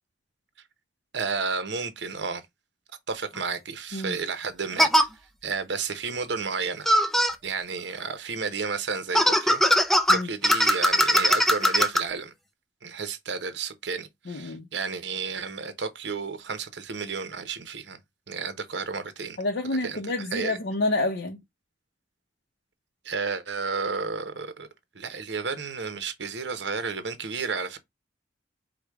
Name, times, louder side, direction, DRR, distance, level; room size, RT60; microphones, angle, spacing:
voice 1, 1.1-2.4 3.1-5.1 5.4-6.9 7.4-9.6 10.1-12.3 12.8-18.0 18.3-19.4 19.8-20.0 20.3-20.6 23.0-24.7 24.9-27.8, right 5 dB, 70° right, 0.8 m, -32 dB
sound 1, 3.4-3.5 4.8-5.0 6.9-7.3 9.1-12.0, equal, ahead, 0.5 m, -20 dB
voice 2, 14.3-14.7 19.4-21.4, left 2 dB, 70° left, 0.7 m, -28 dB
4.9 x 2.2 x 4.5 m
head